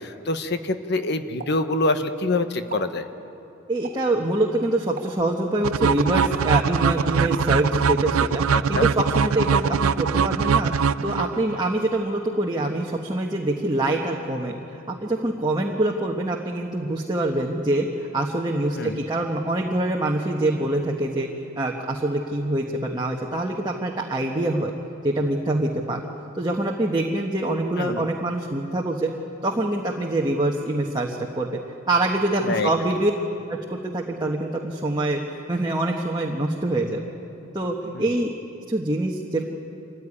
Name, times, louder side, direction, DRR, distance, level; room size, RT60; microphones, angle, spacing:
voice 1, 0.0-3.1 8.5-8.9 18.8-19.0 27.8-28.1 32.4-32.7 37.9-38.1, left 2 dB, 50° left, 9 dB, 1.1 m, -26 dB
Explosion, 1.4-2.3 2.6-3.0 3.8-4.2 5.0-5.3 6.2-6.9 7.4-7.6, right 5 dB, 45° right, 1.5 m, -40 dB
voice 2, 3.7-10.7 11.0-21.3 21.6-24.7 25.0-26.0 26.3-29.1 29.4-31.6 31.9-33.1 33.5-37.0 37.5-38.3 38.6-39.5, right 1 dB, 20° right, -1 dB, 1.2 m, -25 dB
sound 1, 5.6-11.6, right 6 dB, 85° right, 0.5 m, -22 dB
26.0 x 15.0 x 9.9 m, 2.8 s
head